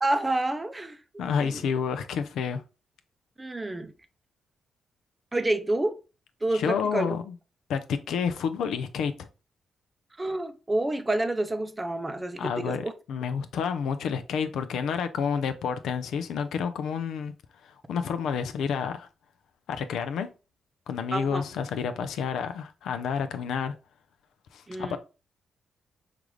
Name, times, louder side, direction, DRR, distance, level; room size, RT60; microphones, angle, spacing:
voice 1, 0.0-1.7 3.4-3.9 5.3-6.0 6.4-7.2 10.2-12.9 21.1-21.4 24.7-25.0, right 2 dB, 25° right, 0.5 m, -29 dB
voice 2, 1.2-2.6 6.5-7.3 7.7-9.3 12.4-17.3 17.6-19.1 19.7-20.3 20.9-23.8 24.5-25.0, left 6 dB, 80° left, 0.4 m, -29 dB
4.7 x 2.5 x 3.1 m
supercardioid pair, 55°, 0 cm